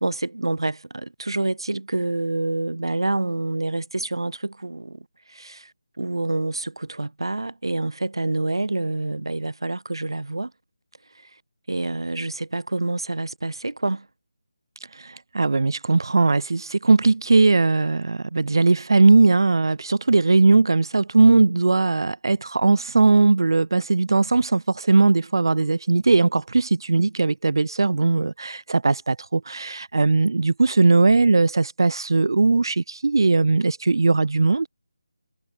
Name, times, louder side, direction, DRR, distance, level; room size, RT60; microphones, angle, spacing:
voice 1, 0.0-5.7 6.0-10.5 11.7-14.1, right 2 dB, 85° right, 1.9 m, -27 dB
voice 2, 15.0-34.7, right 3 dB, 65° right, 1.0 m, -19 dB
figure-of-eight pair, 165°, 2 cm